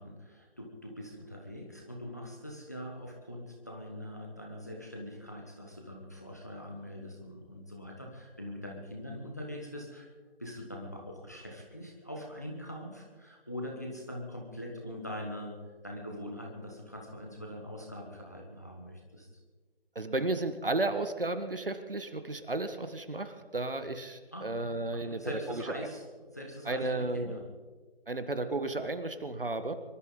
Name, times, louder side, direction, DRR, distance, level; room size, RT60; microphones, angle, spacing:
voice 1, 0.0-10.1 10.4-15.6 15.8-19.3 24.3-27.4, equal, 15° left, 0 dB, 1.2 m, -43 dB
voice 2, 19.9-25.2 25.5-25.6 26.7-27.4 28.1-29.8, right 2 dB, 55° right, 10 dB, 1.6 m, -33 dB
25.0 x 13.0 x 3.9 m, 1.4 s
figure-of-eight pair, 175°, 32 cm